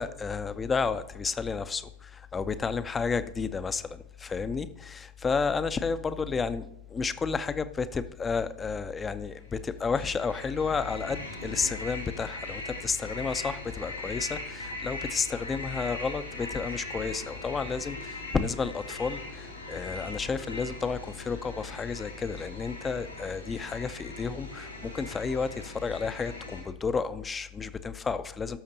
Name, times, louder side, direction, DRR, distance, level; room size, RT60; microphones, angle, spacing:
voice 1, 0.0-28.6, left 5 dB, 15° left, 13 dB, 0.5 m, -31 dB
sound 1, 9.5-26.6, left 1 dB, 85° left, 3.6 m, -40 dB
19.0 x 6.6 x 2.8 m, 0.80 s
figure-of-eight pair, 90°, 0 cm